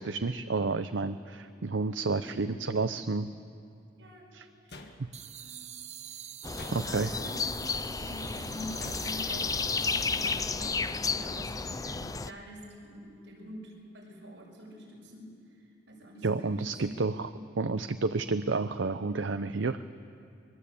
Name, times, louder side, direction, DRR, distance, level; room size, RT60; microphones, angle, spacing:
voice 1, 0.0-3.3 4.3-4.5 6.7-7.1 16.2-17.3 17.6-19.8, right 3 dB, 85° right, 10 dB, 0.7 m, -30 dB
voice 2, 2.1-2.6 3.9-4.3 4.6-5.6 6.8-7.5 8.0-15.3 15.6-17.0, equal, 70° right, -2 dB, 6.6 m, -46 dB
sound 1, 4.7-5.4 6.5-7.2 8.8-9.4 10.2-10.8, left 2 dB, 60° left, 1.6 m, -49 dB
sound 2, 5.1-10.9, right 10 dB, 35° right, 0.8 m, -46 dB
sound 3, 6.4-12.3, left 4 dB, 20° left, 0.5 m, -32 dB
23.0 x 22.5 x 8.5 m, 2.5 s
head